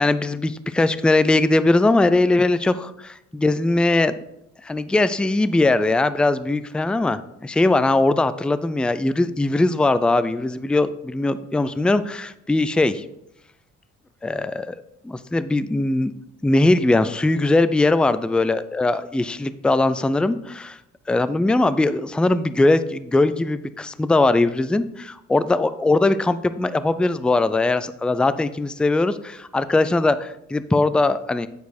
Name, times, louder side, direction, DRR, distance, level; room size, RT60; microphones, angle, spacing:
voice 1, 0.0-4.2 4.6-13.0 14.2-14.8 15.0-16.1 16.4-20.8 21.1-31.5, left 2 dB, 5° left, 14 dB, 0.3 m, -20 dB
9.3 x 4.7 x 4.2 m, 0.80 s
cardioid pair, 90°, 30 cm